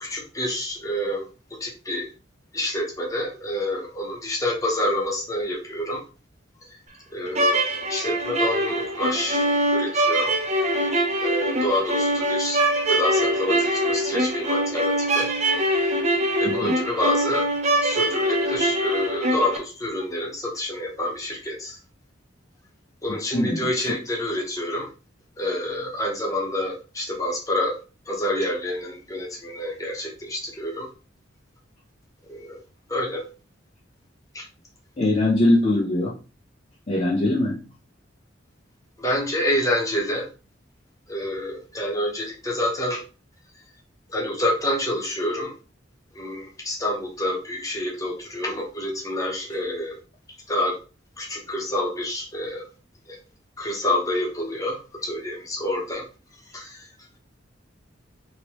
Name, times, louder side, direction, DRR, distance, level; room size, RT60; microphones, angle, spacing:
voice 1, 0.0-1.3 1.6-2.1 2.5-6.0 7.1-7.6 7.9-10.3 11.2-12.6 12.9-15.5 16.4-17.5 17.8-21.8 23.0-24.9 25.4-27.8 28.1-30.9 32.3-32.6 32.9-33.3 34.3-34.5 39.0-40.3 41.1-43.0 44.1-45.5 46.1-50.0 50.5-50.8 51.2-52.7 53.1-53.2 53.6-56.0 56.5-56.9, left 1 dB, 15° left, -2 dB, 0.9 m, -28 dB
sound 1, 7.3-19.6, right 1 dB, 35° right, 0.6 m, -23 dB
voice 2, 23.3-24.0 35.0-36.2 36.9-37.6, left 1 dB, 35° left, -4 dB, 0.6 m, -22 dB
3.0 x 2.9 x 2.9 m, 0.33 s
head